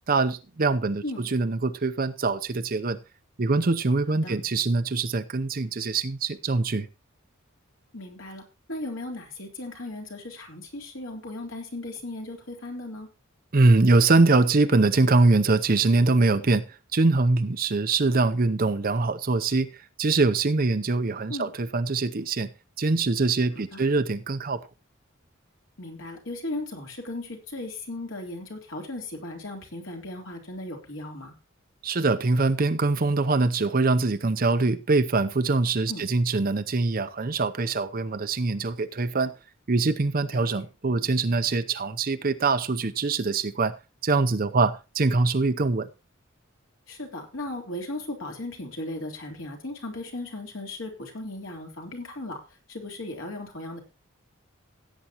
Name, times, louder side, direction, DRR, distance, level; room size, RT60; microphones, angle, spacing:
voice 1, 0.1-3.0 3.4-6.9 13.5-16.6 16.9-19.7 20.0-22.5 22.8-24.6 31.8-39.3 39.7-43.7 44.0-45.9, right 3 dB, 45° right, 0.7 m, -23 dB
voice 2, 7.9-13.1 21.3-21.5 23.7-23.8 25.8-31.3 35.9-36.0 40.3-40.6 46.9-52.4 52.7-53.8, left 2 dB, 70° left, 3.4 m, -36 dB
16.5 x 8.5 x 2.9 m
head